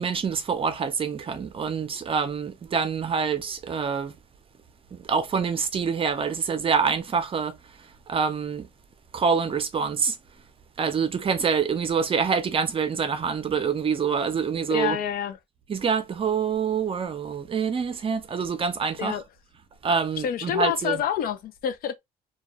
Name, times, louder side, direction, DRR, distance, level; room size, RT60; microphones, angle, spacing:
voice 1, 0.0-4.2 4.9-8.7 9.1-10.2 10.8-15.0 15.7-19.2 19.8-21.0, right 6 dB, 35° right, 0.6 m, -26 dB
voice 2, 14.7-15.4 19.0-19.2 20.2-21.9, left 9 dB, 60° left, 0.5 m, -27 dB
2.3 x 2.2 x 2.8 m
cardioid pair, 110°, 17 cm